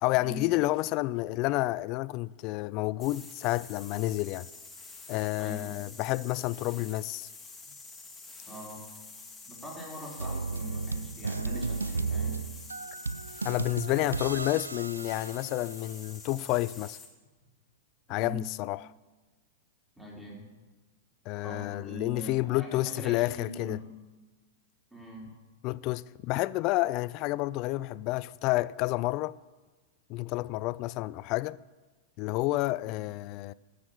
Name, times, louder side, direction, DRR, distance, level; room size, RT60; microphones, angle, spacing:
voice 1, 0.0-4.5 5.1-7.3 13.4-17.0 18.1-18.8 21.3-23.8 25.6-29.4 30.1-31.6 32.2-33.5, left 18 dB, 45° left, 0.3 m, -30 dB
sound 1, 3.0-17.1, left 3 dB, 10° left, 1.9 m, -48 dB
voice 2, 5.4-5.8 8.5-8.8 9.5-12.4 18.1-18.5 20.0-20.5 21.4-23.9 24.9-25.3 32.8-33.1, right 1 dB, 5° right, 4.2 m, -42 dB
sound 2, 10.2-16.0, right 4 dB, 90° right, 0.4 m, -34 dB
13.5 x 6.4 x 7.2 m
hypercardioid pair, 100°, 0 cm